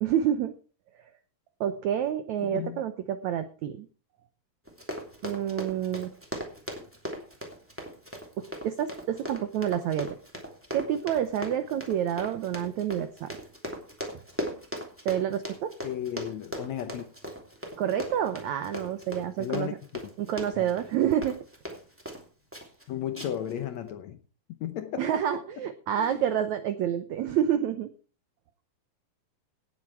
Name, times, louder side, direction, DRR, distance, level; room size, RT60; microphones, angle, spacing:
voice 1, 0.0-0.5 1.6-3.9 5.2-6.1 8.4-10.1 10.7-13.3 15.0-15.7 17.8-19.7 20.3-21.4 25.0-27.9, right 10 dB, 80° right, 1.6 m, -28 dB
voice 2, 2.4-2.8 15.8-17.0 19.4-19.7 20.6-20.7 22.9-24.2 24.6-25.2 26.0-26.2, left 10 dB, 80° left, 1.6 m, -34 dB
Run, 4.7-22.2 22.5-22.8 23.2-23.5 23.9-24.0, equal, 5° right, 2.2 m, -38 dB
18.0 x 7.7 x 4.7 m
omnidirectional pair, 4.4 m